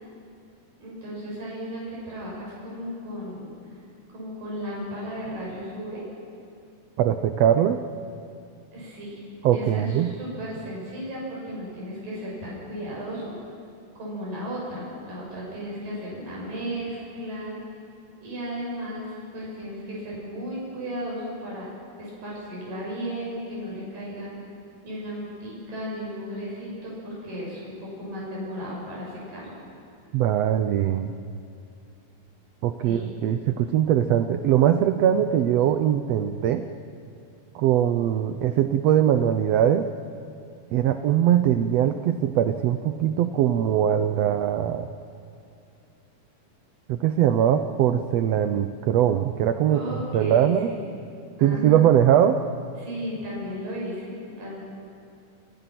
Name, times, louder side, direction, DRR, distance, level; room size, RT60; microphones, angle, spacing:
voice 1, 0.8-3.5 4.1-6.0 8.7-9.2 9.5-13.3 14.0-17.6 18.2-21.7 22.0-24.3 24.8-29.5 32.8-33.1 49.7-50.9 51.4-51.9 52.8-54.6, equal, 90° right, -5 dB, 8.6 m, -35 dB
voice 2, 7.0-7.8 9.4-10.1 30.1-31.1 32.6-36.7 37.5-39.9 40.7-44.9 46.9-49.8 50.1-50.7 51.4-52.4, right 10 dB, 70° right, 9 dB, 1.6 m, -21 dB
28.0 x 27.0 x 6.0 m, 2.5 s
omnidirectional pair, 3.8 m